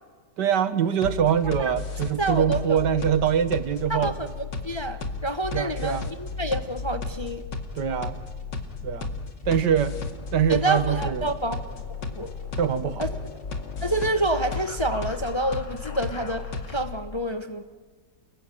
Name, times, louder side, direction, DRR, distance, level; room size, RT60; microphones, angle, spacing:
voice 1, 0.4-4.1 5.5-6.1 7.8-8.2 8.8-9.2 9.5-10.0 10.3-11.3 12.6-13.0, right 8 dB, 75° right, 12 dB, 1.8 m, -24 dB
sound 1, 1.0-17.0, left 4 dB, 85° left, 2.7 m, -34 dB
voice 2, 2.2-2.8 3.9-7.4 10.5-11.6 12.1-12.3 13.0-13.1 13.8-17.6, right 1 dB, 20° left, 9 dB, 0.9 m, -28 dB
29.5 x 20.5 x 9.1 m, 1.5 s
omnidirectional pair, 1.9 m